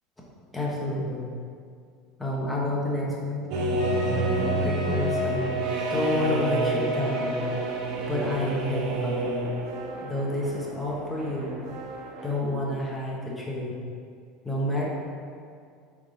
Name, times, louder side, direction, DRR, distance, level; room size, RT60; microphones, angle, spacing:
voice 1, 0.5-1.3 2.2-3.5 4.4-5.5 5.9-7.4 8.1-9.5 10.0-11.6 12.2-13.7 14.4-14.9, left 1 dB, 5° left, -4 dB, 1.0 m, -29 dB
sound 1, 3.5-12.3, right 2 dB, 55° right, 1.0 m, -29 dB
Wind instrument woodwind instrument, 3.8-7.6, equal, 55° left, 1.1 m, -32 dB
8.8 x 3.7 x 3.8 m, 2.3 s
cardioid pair, 170°, 0 cm